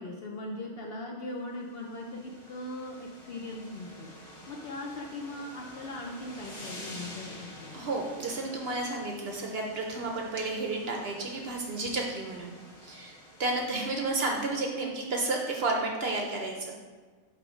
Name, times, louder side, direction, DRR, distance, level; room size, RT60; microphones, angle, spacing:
voice 1, 0.0-7.7, left 1 dB, 60° left, 0 dB, 0.7 m, -40 dB
sound 1, 1.5-14.7, left 1 dB, 40° left, 1.6 m, -49 dB
voice 2, 7.7-12.5 12.8-16.7, right 2 dB, 55° right, 1 dB, 0.8 m, -32 dB
5.9 x 3.5 x 5.0 m, 1.4 s
omnidirectional pair, 1.5 m